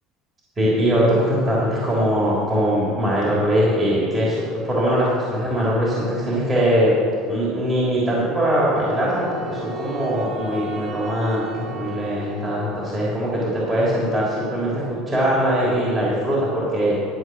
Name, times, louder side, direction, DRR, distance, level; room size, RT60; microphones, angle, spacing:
voice 1, 0.6-6.9 7.3-16.9, equal, 25° right, -6 dB, 3.3 m, -21 dB
Wind instrument woodwind instrument, 8.7-13.0, right 3 dB, 45° right, 1.5 m, -35 dB
12.5 x 8.0 x 6.2 m, 2.3 s
supercardioid pair, 120°, 0 cm